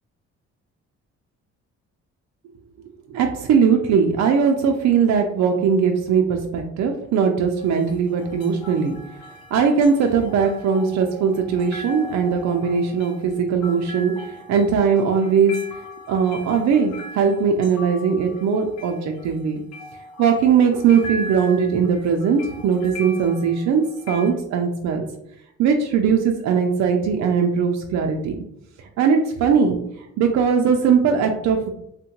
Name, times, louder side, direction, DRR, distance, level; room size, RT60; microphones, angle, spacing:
voice 1, 3.1-9.0 9.5-15.5 16.1-19.6 20.2-25.0 25.6-28.4 28.8-31.7, right 6 dB, 65° right, 3 dB, 0.4 m, -20 dB
sound 1, 7.6-24.3, equal, 60° left, 0.6 m, -40 dB
3.5 x 2.2 x 2.8 m, 0.81 s
cardioid pair, 90°, 30 cm